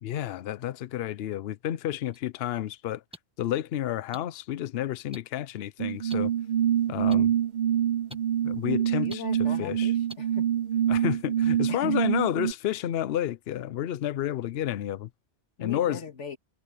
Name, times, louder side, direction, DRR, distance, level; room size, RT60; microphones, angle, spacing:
voice 1, 0.0-3.0 3.4-6.3 6.9-7.3 8.4-9.2 9.6-9.9 10.9-15.1 15.6-16.0, left 12 dB, 65° left, 0.8 m, -30 dB
sound 1, 2.1-2.2 3.1-3.2 4.1-4.2 5.1-5.2 6.1-6.2 7.1-7.2 8.1-8.2 9.1-9.2 10.1-10.2, equal, 5° right, 1.2 m, -42 dB
sound 2, 5.8-12.5, right 10 dB, 45° right, 0.7 m, -26 dB
voice 2, 9.0-10.5 11.7-12.0 12.7-12.8 15.6-16.4, left 6 dB, 80° left, 2.4 m, -39 dB
omnidirectional pair, 1.2 m